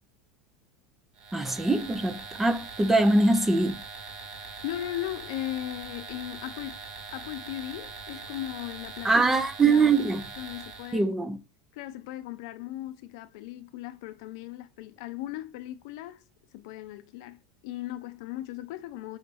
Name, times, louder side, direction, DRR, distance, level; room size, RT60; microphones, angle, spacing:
sound 1, 1.2-11.0, right 4 dB, 45° right, 1.7 m, -42 dB
voice 1, 1.3-3.8 9.0-10.2 10.9-11.4, right 3 dB, 10° right, 0.6 m, -23 dB
voice 2, 4.6-9.1 9.6-9.8 10.4-11.1 11.7-16.2 16.5-19.2, left 14 dB, 70° left, 0.6 m, -37 dB
6.3 x 3.3 x 2.5 m
supercardioid pair, 145°, 2 cm